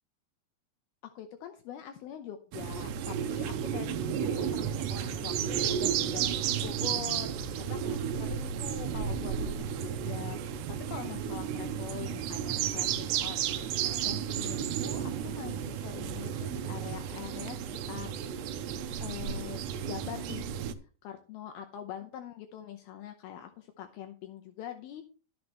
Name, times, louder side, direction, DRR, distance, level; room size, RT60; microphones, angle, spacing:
voice 1, 1.0-7.3 7.7-10.6 10.9-18.1 19.0-20.5 21.0-25.0, left 10 dB, 75° left, 6 dB, 2.6 m, -43 dB
sound 1, 2.5-20.7, right 9 dB, 85° right, 3.1 m, -33 dB
12.5 x 10.5 x 3.2 m, 0.37 s
omnidirectional pair, 4.8 m